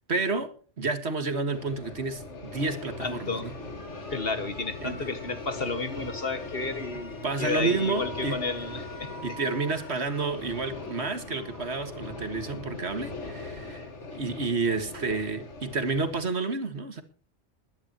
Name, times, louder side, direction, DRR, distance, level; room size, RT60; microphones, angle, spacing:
voice 1, 0.1-3.5 4.8-5.1 7.2-8.4 9.2-13.9 14.1-17.0, right 3 dB, 70° right, 2.1 m, -30 dB
sound 1, 1.5-16.2, left 3 dB, 85° left, 2.3 m, -40 dB
Alarm, 2.5-13.5, equal, 15° left, 2.5 m, -49 dB
voice 2, 3.0-3.5 4.1-9.4, left 3 dB, 55° left, 2.0 m, -32 dB
21.5 x 10.5 x 3.0 m
omnidirectional pair, 1.2 m